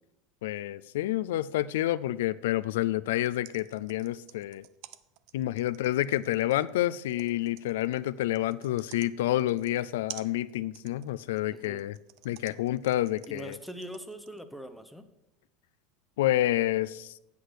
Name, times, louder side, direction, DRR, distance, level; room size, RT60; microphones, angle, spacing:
voice 1, 0.4-4.6 5.3-12.0 12.2-13.6 16.2-17.1, left 14 dB, 85° left, 16 dB, 0.3 m, -29 dB
sound 1, 3.1-14.4, right 14 dB, 60° right, 0.5 m, -50 dB
voice 2, 11.5-11.8 13.3-15.0, equal, ahead, 11 dB, 0.8 m, -42 dB
8.4 x 7.9 x 6.3 m, 0.89 s
supercardioid pair, 130°, 0 cm